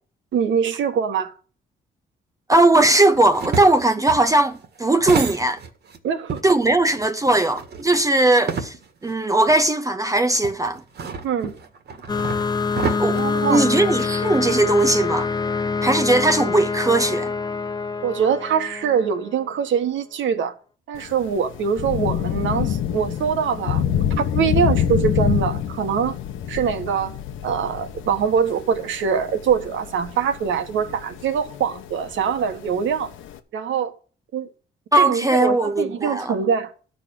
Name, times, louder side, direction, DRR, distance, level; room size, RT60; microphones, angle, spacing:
voice 1, 0.3-1.3 6.0-6.4 11.2-11.5 13.1-13.7 18.0-20.5 20.9-26.2 26.5-27.1 27.4-33.1 33.5-33.9 34.3-34.5 34.9-36.7, right 7 dB, 75° right, 1.6 m, -23 dB
voice 2, 2.5-5.6 6.4-8.7 9.0-10.8 12.9-13.2 13.5-15.3 15.8-17.3 34.9-36.3, right 2 dB, 15° right, 0.6 m, -18 dB
sound 1, 3.1-6.0 6.3-9.1 9.5-9.6 10.4-14.1, right 5 dB, 55° right, 1.7 m, -31 dB
sound 2, 12.1-19.4, left 4 dB, 20° left, 0.5 m, -25 dB
Thunder / Rain, 21.0-33.4, left 9 dB, 85° left, 1.1 m, -27 dB
12.5 x 5.0 x 8.6 m
cardioid pair, 90°, 20 cm